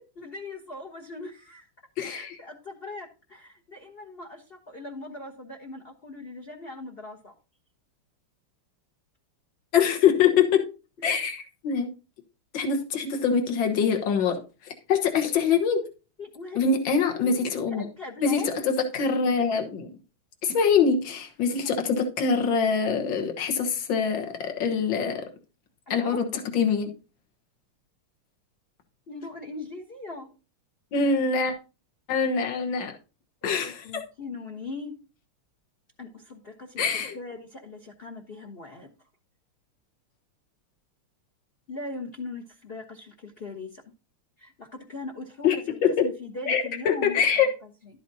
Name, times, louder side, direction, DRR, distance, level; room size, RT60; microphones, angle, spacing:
voice 1, 0.2-1.7 2.0-7.3 16.2-16.6 17.1-17.4 17.8-18.5 21.6-21.7 25.9-26.2 29.1-30.3 33.4-35.0 36.0-38.9 41.7-43.8 44.4-47.2, left 3 dB, 35° left, 2 dB, 1.0 m, -40 dB
voice 2, 2.0-2.4 9.7-10.6 11.0-11.9 12.5-15.8 16.6-17.8 18.2-19.9 20.4-25.2 25.9-26.9 30.9-31.5 32.1-33.0 33.4-34.0 36.8-37.2 45.4-45.6 45.8-46.1 46.5-47.5, left 6 dB, 60° left, 4 dB, 2.0 m, -24 dB
12.0 x 8.8 x 2.7 m, 0.32 s
omnidirectional pair, 2.4 m